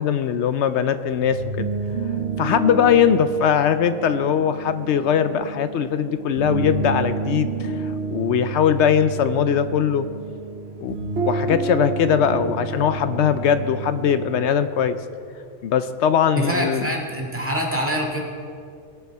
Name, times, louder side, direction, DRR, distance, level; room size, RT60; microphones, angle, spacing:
voice 1, 0.0-1.7 2.4-10.1 10.8-11.0 11.3-15.0 15.6-16.8, left 8 dB, 70° left, 11 dB, 0.8 m, -20 dB
sound 1, 1.1-14.5, right 4 dB, 60° right, 1.2 m, -29 dB
voice 2, 16.4-18.2, right 1 dB, 10° right, -2 dB, 1.8 m, -25 dB
20.0 x 6.9 x 4.6 m, 2.3 s
omnidirectional pair, 1.3 m